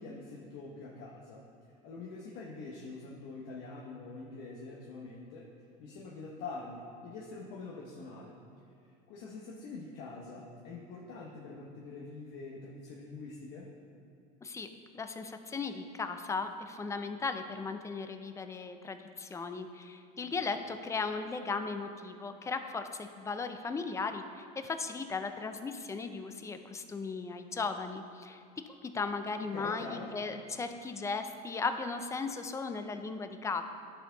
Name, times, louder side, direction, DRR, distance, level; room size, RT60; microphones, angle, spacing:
voice 1, 0.0-1.4 1.8-5.5 5.8-8.4 9.1-13.7 29.4-30.1, left 3 dB, 65° left, -3 dB, 1.0 m, -45 dB
voice 2, 14.9-28.4 28.7-33.6, left 4 dB, 15° left, 8 dB, 0.4 m, -37 dB
11.0 x 4.5 x 3.8 m, 2.6 s
supercardioid pair, 130°, 20 cm